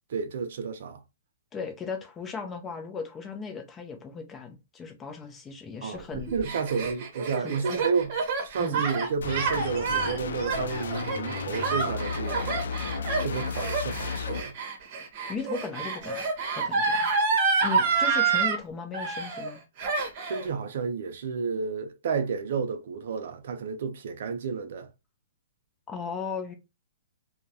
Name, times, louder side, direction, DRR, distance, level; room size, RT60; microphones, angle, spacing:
voice 1, 0.1-1.0 5.8-8.1 8.4-14.5 17.8-17.9 20.0-24.9, right 5 dB, 60° right, 0.4 m, -31 dB
voice 2, 1.5-6.3 7.4-7.8 8.6-8.8 15.3-16.2 16.6-17.1 17.6-19.6 25.9-26.5, left 5 dB, 15° left, 0.5 m, -37 dB
Gasp, 6.1-18.6 18.9-19.5 19.8-20.5, right 4 dB, 40° right, 0.8 m, -28 dB
sound 1, 9.2-14.4, left 5 dB, 80° left, 0.3 m, -33 dB
2.2 x 2.0 x 2.7 m
hypercardioid pair, 155°, 0 cm